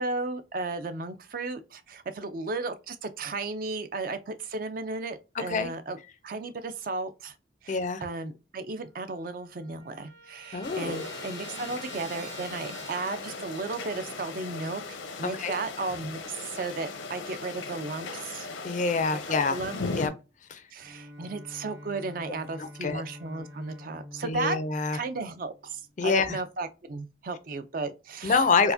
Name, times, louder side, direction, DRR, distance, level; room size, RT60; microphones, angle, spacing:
voice 1, 0.0-6.0 6.2-7.3 7.6-14.8 15.2-18.5 19.3-19.8 20.7-24.6 24.9-28.4, right 3 dB, 45° right, 0.4 m, -34 dB
voice 2, 7.7-8.0 10.5-11.1 15.4-15.5 18.6-19.6 20.0-20.1 20.5-20.6 22.6-23.0 24.2-25.0 26.0-26.4 28.2-28.7, left 4 dB, 40° left, 0.4 m, -26 dB
Trumpet, 8.9-9.0 9.2-13.6, right 2 dB, 90° right, 1.6 m, -47 dB
sound 1, 10.6-20.1, left 3 dB, 85° left, 0.7 m, -38 dB
Bowed string instrument, 20.8-26.0, left 1 dB, 70° right, 1.9 m, -47 dB
4.5 x 2.1 x 2.6 m
head